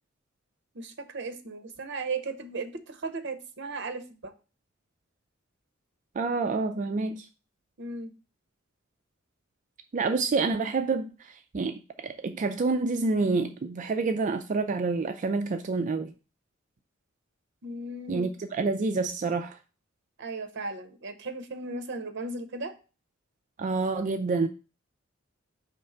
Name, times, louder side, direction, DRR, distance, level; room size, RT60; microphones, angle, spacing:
voice 1, 0.7-4.3 7.8-8.1 17.6-18.3 20.2-22.7, right 3 dB, 60° right, 0.8 m, -36 dB
voice 2, 6.2-7.3 9.9-16.1 18.1-19.6 23.6-24.5, right 3 dB, 40° right, 0.4 m, -28 dB
5.3 x 3.2 x 5.6 m
head